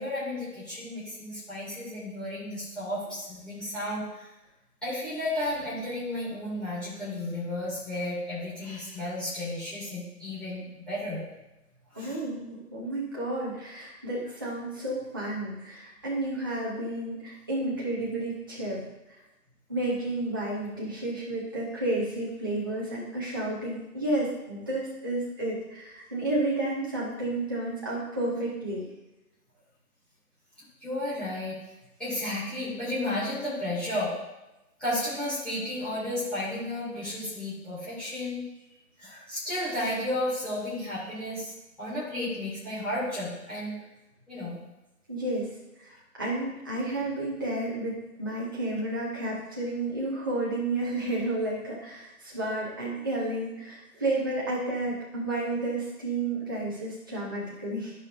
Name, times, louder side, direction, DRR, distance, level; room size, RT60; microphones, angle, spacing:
voice 1, 0.0-4.3 4.8-11.2 11.9-12.2 30.8-31.6 32.0-34.1 34.8-38.4 39.0-41.5 41.8-43.7 44.3-44.6, left 1 dB, ahead, -13 dB, 2.3 m, -33 dB
voice 2, 11.9-18.8 19.7-28.8 45.1-45.5 45.8-45.9 46.2-57.9, right 2 dB, 15° right, -7 dB, 0.6 m, -31 dB
13.0 x 5.4 x 2.6 m, 0.99 s
hypercardioid pair, 165°, 46 cm